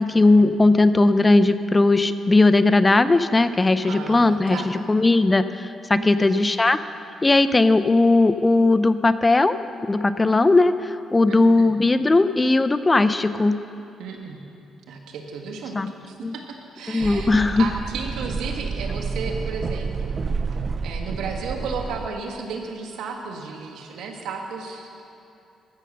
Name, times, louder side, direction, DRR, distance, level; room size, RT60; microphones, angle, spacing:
voice 1, 0.0-6.8 7.2-9.6 9.9-13.6 15.7-15.9 16.2-16.3 16.9-17.7, left 2 dB, 20° left, 12 dB, 0.4 m, -18 dB
voice 2, 3.8-4.7 5.9-6.4 11.2-11.7 14.0-14.4 14.9-20.2 20.8-25.1, right 4 dB, 80° right, 3 dB, 1.4 m, -34 dB
sound 1, 17.0-22.1, right 5 dB, 40° right, 0.4 m, -29 dB
14.5 x 6.4 x 6.5 m, 2.7 s
cardioid pair, 90°, 0 cm